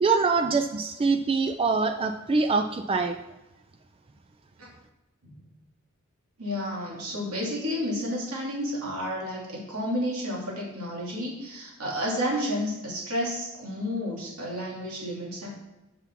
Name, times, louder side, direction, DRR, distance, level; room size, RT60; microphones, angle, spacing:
voice 1, 0.0-3.2, right 4 dB, 25° right, 7 dB, 0.3 m, -24 dB
voice 2, 6.4-15.5, equal, 90° right, -3 dB, 2.5 m, -31 dB
6.0 x 5.8 x 5.8 m, 1.0 s
head